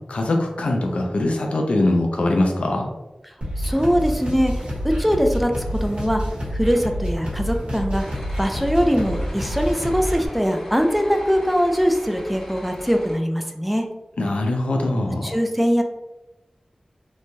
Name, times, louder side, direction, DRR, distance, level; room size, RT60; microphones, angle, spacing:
voice 1, 0.1-2.9 14.2-15.4, left 2 dB, 85° left, 2 dB, 0.4 m, -22 dB
sound 1, 3.4-10.3, equal, 75° right, 1.0 m, -28 dB
voice 2, 3.6-6.2 6.5-8.0 8.4-13.9 15.2-15.8, equal, ahead, 4 dB, 0.4 m, -22 dB
sound 2, 8.0-13.2, equal, 25° left, 0.7 m, -39 dB
3.1 x 2.2 x 2.6 m, 1.0 s
wide cardioid pair, 70°, 2 cm